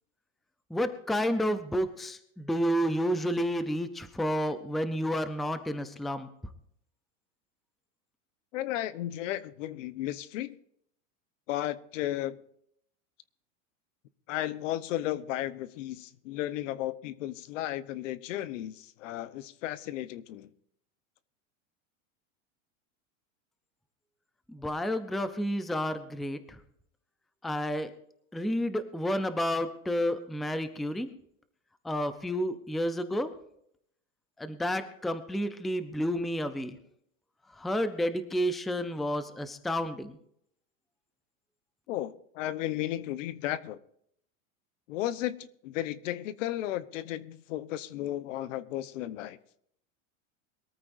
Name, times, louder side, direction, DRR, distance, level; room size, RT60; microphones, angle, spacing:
voice 1, 0.7-6.3 24.5-26.6 27.4-27.9 28.3-31.1 31.8-33.3 34.4-36.8 37.6-40.2, equal, ahead, 0.5 m, -30 dB
voice 2, 8.5-10.6 11.5-12.4 14.3-20.5 41.9-43.8 44.9-49.4, left 13 dB, 70° left, 1.0 m, -34 dB
22.5 x 14.0 x 2.6 m
supercardioid pair, 145°, 40 cm